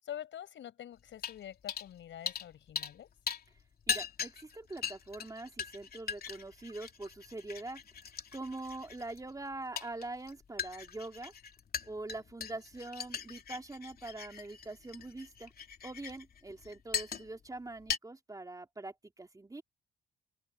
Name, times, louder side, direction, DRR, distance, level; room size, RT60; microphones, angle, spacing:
voice 1, 0.0-3.1, left 11 dB, 70° left, 6.8 m, -46 dB
sound 1, 1.2-1.4 1.7-1.9 2.3-3.0 3.3-17.5 17.8-18.0, left 6 dB, 50° left, 2.9 m, -40 dB
voice 2, 3.9-7.8 8.3-11.3 11.8-15.5 15.8-19.6, right 2 dB, 15° right, 3.4 m, -43 dB
cardioid pair, 90°, 20 cm